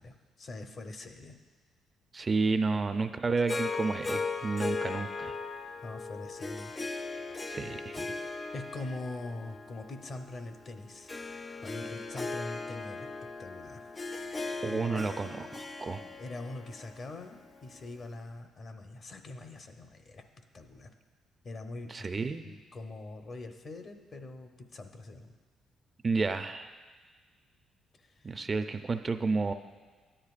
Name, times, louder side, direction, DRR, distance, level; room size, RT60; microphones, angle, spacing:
voice 1, 0.0-1.4 5.8-6.7 8.5-11.1 11.6-13.1 13.4-13.9 14.7-15.0 16.2-20.2 20.5-20.9 21.4-25.3 28.0-28.4, left 2 dB, 45° left, 6 dB, 0.9 m, -43 dB
voice 2, 2.1-5.4 7.5-8.1 14.6-16.0 21.9-22.5 26.0-26.7 28.2-29.5, right 4 dB, 30° right, 9 dB, 0.4 m, -31 dB
Harp, 3.5-17.9, left 3 dB, 30° left, 0.4 m, -38 dB
13.0 x 10.0 x 2.4 m, 1.4 s
cardioid pair, 90°, 0 cm